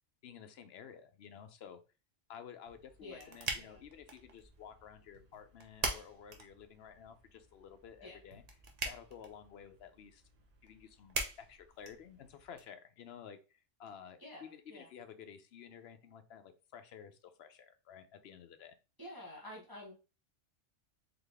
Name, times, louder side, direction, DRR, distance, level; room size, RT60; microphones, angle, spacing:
voice 1, 0.2-1.8 2.3-8.4 8.8-10.2 10.6-18.8, left 8 dB, 65° left, 9 dB, 0.8 m, -53 dB
sound 1, 2.7-12.6, right 3 dB, 40° right, 0.6 m, -44 dB
voice 2, 3.0-3.8 8.0-8.2 14.2-14.9 19.0-19.9, left 1 dB, 20° right, -4 dB, 0.9 m, -50 dB
4.0 x 2.8 x 3.3 m, 0.31 s
omnidirectional pair, 1.3 m